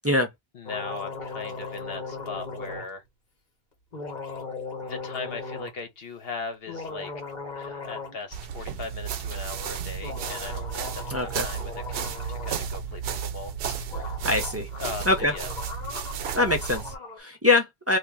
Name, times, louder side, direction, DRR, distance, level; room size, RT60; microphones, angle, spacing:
voice 1, 0.5-3.0 4.8-7.1 7.5-13.5 14.8-15.5, left 4 dB, 70° left, 1.1 m, -38 dB
sound 1, 0.7-2.9 3.9-5.7 6.5-8.2 8.4-8.5 10.0-12.7 13.6-13.7 13.9-17.2, left 4 dB, 45° left, 1.2 m, -38 dB
sound 2, 8.3-17.0, right 7 dB, 70° right, 0.7 m, -33 dB
voice 2, 11.1-11.5 14.2-14.7 15.1-15.3 16.3-18.0, left 2 dB, 15° right, 0.6 m, -23 dB
2.9 x 2.5 x 3.6 m
omnidirectional pair, 1.1 m